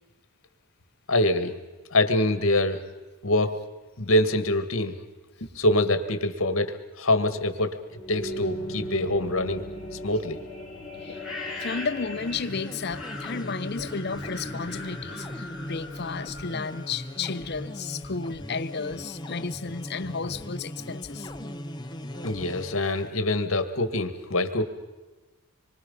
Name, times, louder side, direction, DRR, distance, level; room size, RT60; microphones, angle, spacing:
voice 1, 1.1-1.6 1.9-2.8 3.2-3.6 4.0-5.0 5.6-7.8 8.1-9.6 10.0-10.4 13.8-13.9 22.2-24.6, left 1 dB, 65° left, 1.8 m, -24 dB
sound 1, 7.9-17.7, left 1 dB, ahead, 4.0 m, -38 dB
voice 2, 11.6-21.3, left 5 dB, 50° left, 0.7 m, -33 dB
sound 2, 12.1-23.1, left 1 dB, 20° left, 0.9 m, -39 dB
26.0 x 24.0 x 5.5 m
head